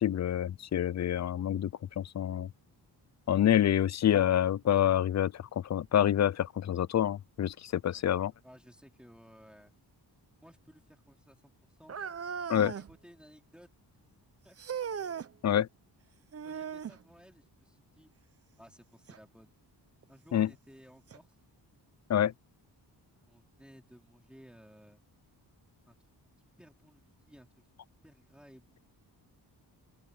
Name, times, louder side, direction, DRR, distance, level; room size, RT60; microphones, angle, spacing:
voice 1, 0.0-1.7 2.0-2.5 3.3-5.3 5.7-8.3 12.5-12.7 15.4-15.7 20.3-20.5 22.1-22.3, left 10 dB, 40° left, 0.4 m, -27 dB
voice 2, 8.4-9.7 10.4-12.0 12.6-13.7 14.4-14.6 16.4-18.1 18.6-19.5 20.1-21.4 23.3-25.0 25.9-26.0 26.3-27.6 28.0-28.8, equal, ahead, 3.9 m, -57 dB
sound 1, 11.9-12.9 14.6-15.3 16.3-17.0 19.1-19.2 20.0-20.1 21.1-21.2, right 7 dB, 35° right, 0.7 m, -38 dB
open air
wide cardioid pair, 135°, 41 cm